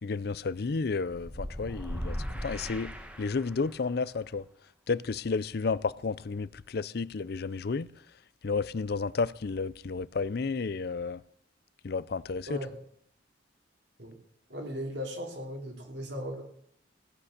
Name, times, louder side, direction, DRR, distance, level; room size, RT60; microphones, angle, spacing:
voice 1, 0.0-2.2 2.4-2.9 3.2-4.4 4.9-7.9 8.4-11.2 11.8-12.6, left 4 dB, 55° left, 0.5 m, -31 dB
sound 1, 1.2-3.8, equal, 10° right, 1.4 m, -38 dB
voice 2, 14.5-16.4, equal, 65° right, 3.1 m, -37 dB
16.5 x 8.5 x 6.6 m
head